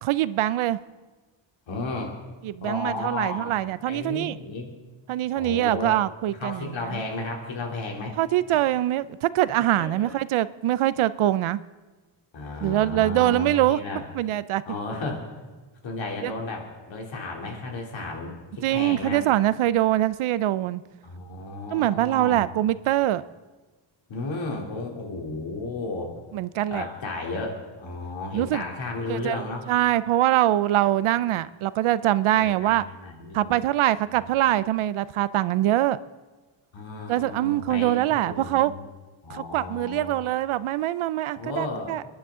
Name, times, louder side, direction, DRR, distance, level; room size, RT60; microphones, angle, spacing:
voice 1, 0.0-0.8 2.4-4.4 5.1-7.0 8.2-11.6 12.6-13.8 14.1-14.6 16.2-16.3 18.6-20.8 21.7-23.2 26.3-26.9 28.3-28.6 29.1-29.4 29.7-32.8 33.3-36.0 37.1-38.7 39.3-42.1, right 14 dB, 80° right, 17 dB, 0.6 m, -23 dB
voice 2, 1.7-2.1 2.6-3.5 3.8-4.7 5.3-6.0 6.3-8.1 8.5-8.6 9.5-10.1 12.3-14.0 14.7-15.2 15.8-18.3 18.7-19.2 21.0-22.5 24.1-26.1 26.7-29.6 32.3-33.6 34.1-34.3 36.7-38.8 39.2-40.2 41.4-42.1, left 3 dB, 65° left, 0 dB, 3.1 m, -33 dB
28.0 x 10.5 x 3.7 m, 1.3 s
cardioid pair, 130°, 49 cm